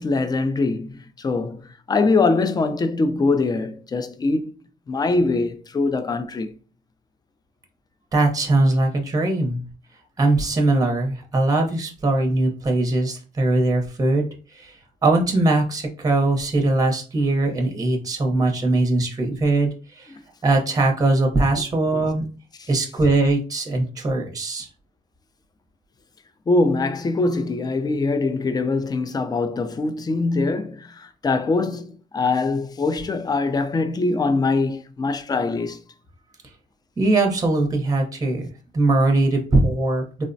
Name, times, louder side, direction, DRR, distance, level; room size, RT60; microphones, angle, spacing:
voice 1, 0.0-4.5 4.9-6.5 21.9-22.1 22.6-22.8 26.5-35.8, left 3 dB, 20° left, 0.3 m, -23 dB
voice 2, 8.1-9.6 10.2-14.2 14.6-14.7 15.0-19.7 20.0-20.1 20.4-22.3 22.7-24.7 37.0-40.0, right 2 dB, 20° right, 0.7 m, -21 dB
3.1 x 2.0 x 2.5 m
cardioid pair, 90°, 20 cm